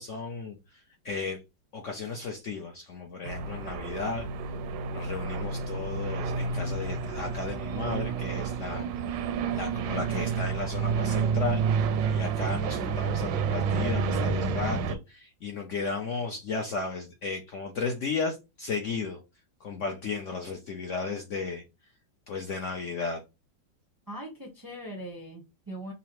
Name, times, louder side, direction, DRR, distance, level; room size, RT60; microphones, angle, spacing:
voice 1, 0.0-1.4 1.7-4.5 4.9-9.3 9.5-19.2 19.6-21.9 22.3-23.2, left 4 dB, 70° left, 0.7 m, -35 dB
sound 1, 3.2-15.0, right 5 dB, 80° right, 1.3 m, -29 dB
voice 2, 24.1-25.9, right 1 dB, 20° right, 0.5 m, -40 dB
5.4 x 2.0 x 3.0 m
omnidirectional pair, 2.0 m